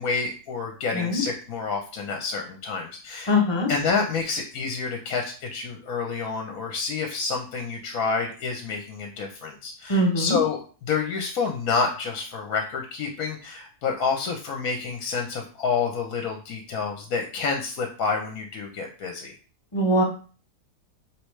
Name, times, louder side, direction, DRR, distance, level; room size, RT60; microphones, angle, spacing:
voice 1, 0.0-3.3 3.7-19.4, left 5 dB, 65° left, 2 dB, 1.1 m, -28 dB
voice 2, 3.3-3.7 9.9-10.4 19.7-20.0, left 1 dB, 30° left, 1 dB, 0.5 m, -22 dB
4.8 x 3.2 x 3.1 m, 0.38 s
omnidirectional pair, 1.7 m